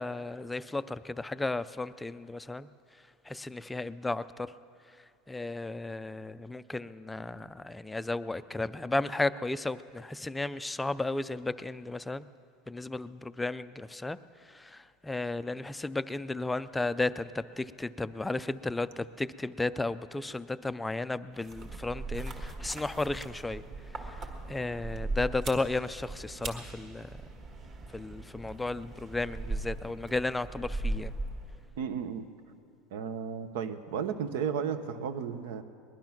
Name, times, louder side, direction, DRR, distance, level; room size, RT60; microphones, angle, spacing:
voice 1, 0.0-4.5 4.9-12.3 12.7-23.6 23.9-27.2 27.9-31.1, left 2 dB, 5° left, 14 dB, 0.3 m, -34 dB
sound 1, 21.4-31.8, right 2 dB, 30° right, 1.6 m, -39 dB
voice 2, 31.8-32.3 32.9-35.6, right 7 dB, 80° right, 11 dB, 1.0 m, -34 dB
20.0 x 11.5 x 5.9 m, 2.4 s
supercardioid pair, 155°, 0 cm